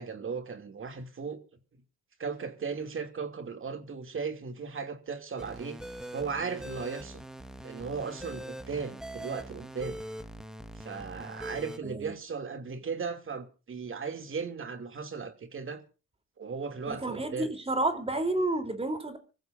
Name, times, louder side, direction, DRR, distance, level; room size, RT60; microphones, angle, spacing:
voice 1, 0.0-1.4 2.2-5.8 6.1-7.2 7.6-10.0 10.8-15.8 16.4-17.5, right 5 dB, 45° right, 2.8 m, -36 dB
sound 1, 5.4-11.8, right 1 dB, ahead, 1.5 m, -42 dB
voice 2, 11.8-12.1 16.9-19.2, right 2 dB, 20° right, 3.6 m, -30 dB
25.5 x 15.0 x 2.7 m
cardioid pair, 90°, 30 cm